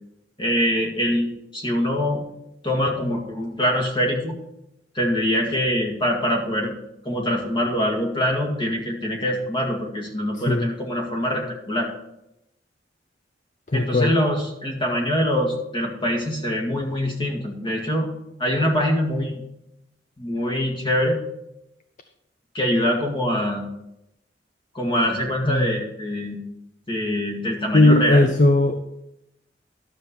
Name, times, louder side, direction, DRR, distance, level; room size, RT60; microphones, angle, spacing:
voice 1, 0.4-2.2 2.6-4.3 5.0-6.7 7.0-11.9 13.7-18.1 18.4-19.4 20.2-21.2 22.5-23.6 24.7-26.4 26.9-28.3, equal, 30° left, 0 dB, 1.9 m, -24 dB
voice 2, 10.3-10.7 13.7-14.1 25.4-25.8 27.7-28.8, left 2 dB, 45° left, 8 dB, 0.6 m, -18 dB
11.5 x 6.9 x 4.4 m, 0.85 s
head